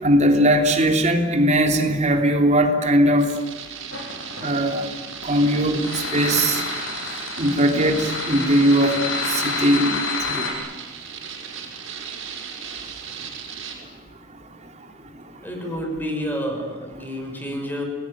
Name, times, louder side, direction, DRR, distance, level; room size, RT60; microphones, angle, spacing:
voice 1, 0.0-3.3 4.4-4.8 5.2-5.9 6.1-6.6 7.4-9.0 9.3-9.9 10.3-10.5, right 1 dB, 35° right, 4 dB, 3.4 m, -19 dB
sound 1, 3.2-13.8, right 7 dB, 80° right, 6.0 m, -36 dB
sound 2, 3.9-10.5, left 4 dB, 75° left, 7.7 m, -28 dB
voice 2, 15.4-17.8, equal, 10° left, 3 dB, 5.9 m, -29 dB
30.0 x 20.0 x 10.0 m, 1.4 s
head